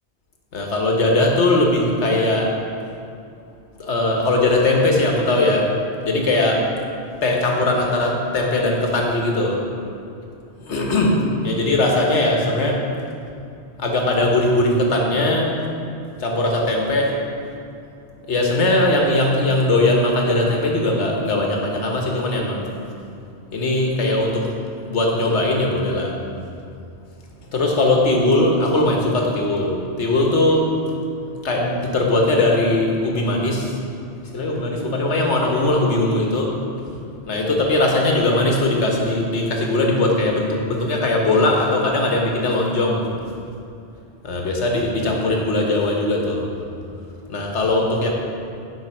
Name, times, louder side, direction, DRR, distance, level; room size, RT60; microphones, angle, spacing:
voice 1, 0.5-2.6 3.8-5.7 6.0-6.7 7.2-9.6 10.6-12.8 13.8-15.5 16.2-17.2 18.3-22.7 23.5-24.5 24.9-26.2 27.5-30.8 31.4-33.8 34.3-36.6 37.3-43.1 44.2-46.5 47.3-48.1, left 2 dB, 90° left, 0 dB, 1.4 m, -20 dB
9.3 x 3.9 x 5.7 m, 2.4 s
omnidirectional pair, 1.1 m